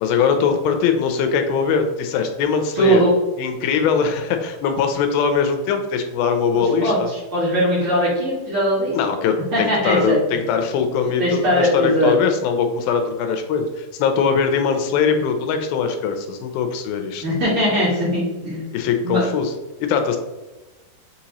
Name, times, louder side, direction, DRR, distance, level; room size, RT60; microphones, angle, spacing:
voice 1, 0.0-3.0 3.4-7.1 8.9-17.2 18.7-19.5 19.8-20.2, left 6 dB, 85° left, 6 dB, 2.3 m, -21 dB
voice 2, 2.8-3.1 6.8-9.0 9.5-10.2 11.2-12.1 17.2-18.8 19.0-19.2, equal, 50° right, -9 dB, 1.8 m, -20 dB
6.2 x 2.9 x 2.9 m, 1.1 s
omnidirectional pair, 4.2 m